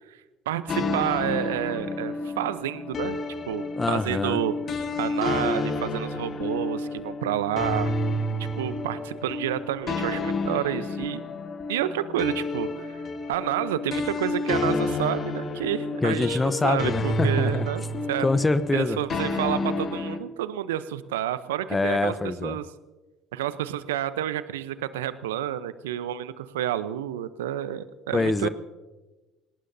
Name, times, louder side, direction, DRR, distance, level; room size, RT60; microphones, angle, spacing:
voice 1, 0.5-3.2 3.5-4.5 5.0-7.9 8.6-11.2 11.7-13.0 13.3-18.3 18.7-22.1 22.4-22.7 23.3-28.5, right 12 dB, 80° right, 14 dB, 0.8 m, -29 dB
sound 1, 0.7-20.2, left 2 dB, 45° left, 1.7 m, -30 dB
voice 2, 3.7-4.4 16.0-17.7 18.2-19.0 21.7-22.6 28.1-28.5, left 3 dB, 20° left, 14 dB, 0.9 m, -25 dB
28.0 x 19.0 x 2.7 m, 1.1 s
hypercardioid pair, 60°, 0 cm